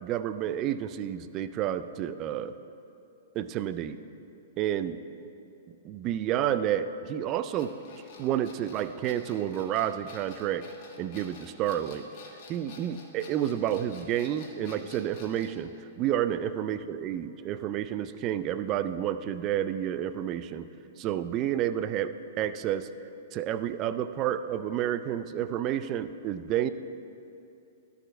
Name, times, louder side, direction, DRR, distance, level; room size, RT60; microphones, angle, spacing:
voice 1, 0.0-2.5 3.3-4.0 4.6-5.0 5.7-7.7 8.2-10.6 11.0-12.0 12.5-20.7 21.0-22.1 22.4-22.9 23.3-26.7, right 11 dB, 35° right, 12 dB, 0.3 m, -30 dB
sound 1, 7.5-15.6, left 4 dB, 45° left, 1.3 m, -50 dB
12.0 x 4.8 x 4.5 m, 2.7 s
hypercardioid pair, 125°, 0 cm